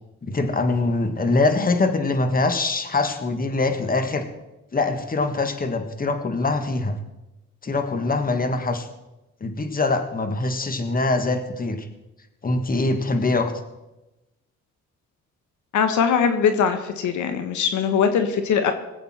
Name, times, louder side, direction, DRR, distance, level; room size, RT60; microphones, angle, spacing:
voice 1, 0.2-4.2 4.7-7.0 7.6-8.9 9.4-11.9 12.4-13.5, left 3 dB, 30° left, 7 dB, 1.6 m, -23 dB
voice 2, 15.7-18.7, left 7 dB, 75° left, 8 dB, 1.3 m, -21 dB
20.5 x 8.3 x 4.4 m, 1.0 s
cardioid pair, 90°, 30 cm